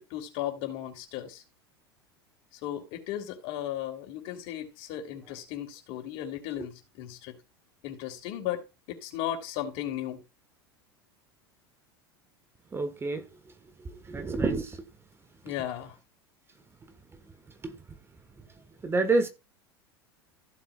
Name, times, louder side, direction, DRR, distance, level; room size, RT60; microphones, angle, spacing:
voice 1, 0.0-1.4 2.6-7.4 7.8-10.2 15.4-15.9, left 11 dB, 50° left, 3.3 m, -36 dB
voice 2, 12.7-13.2 14.1-14.6 18.8-19.3, right 3 dB, 20° right, 1.4 m, -26 dB
15.0 x 7.5 x 2.4 m
figure-of-eight pair, 80°, 13 cm